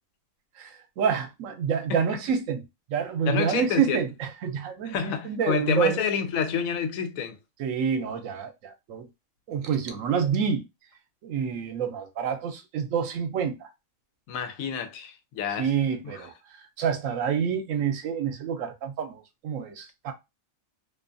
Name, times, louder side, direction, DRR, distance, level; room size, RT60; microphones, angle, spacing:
voice 1, 0.6-2.6 2.9-6.0 7.6-9.1 9.5-10.6 11.2-13.7 15.5-20.1, right 7 dB, 80° right, 1.0 m, -28 dB
voice 2, 3.3-4.0 4.9-7.4 14.3-15.7, left 7 dB, 90° left, 1.0 m, -28 dB
2.6 x 2.3 x 2.5 m
omnidirectional pair, 1.4 m